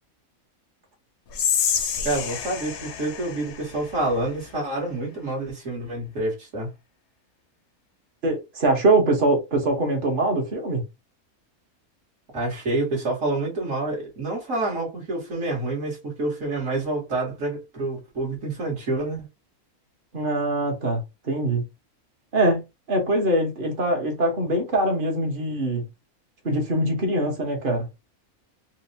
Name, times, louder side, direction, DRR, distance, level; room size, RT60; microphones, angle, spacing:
Whispering, 1.3-4.5, left 7 dB, 65° left, 0.8 m, -28 dB
voice 1, 2.0-6.7 12.3-19.3, right 2 dB, 60° right, 1.9 m, -28 dB
voice 2, 8.2-10.9 20.1-21.6 22.3-25.8 26.4-27.9, right 1 dB, 40° right, 1.1 m, -23 dB
4.5 x 2.1 x 2.7 m
omnidirectional pair, 1.5 m